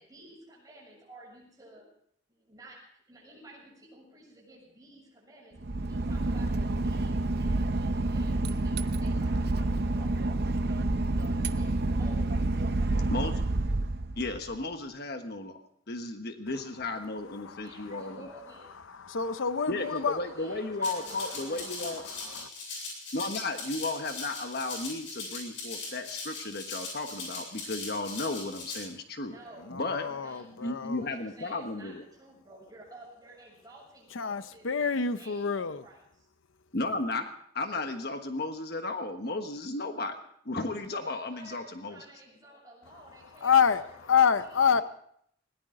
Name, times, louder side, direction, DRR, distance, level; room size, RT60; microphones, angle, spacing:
voice 1, 0.0-1.9 2.3-5.6 5.9-10.9 11.2-13.1 17.6-18.8 19.8-22.4 29.2-36.3 40.9-44.8, right 1 dB, 20° right, 7.1 m, -53 dB
Boat Water vehicle / Engine, 5.6-14.5, right 2 dB, 55° right, 0.7 m, -28 dB
voice 2, 14.2-18.3 19.7-22.0 23.1-29.3 29.7-30.1 30.6-32.0 36.7-40.2 40.4-42.0, left 2 dB, 55° left, 1.3 m, -34 dB
voice 3, 17.4-17.9 19.0-20.2 22.3-22.5 29.7-31.1 34.1-35.8 43.4-44.8, left 6 dB, 90° left, 0.8 m, -27 dB
Rattle (instrument), 20.8-28.8, left 3 dB, 70° left, 7.9 m, -40 dB
20.5 x 18.0 x 3.8 m
head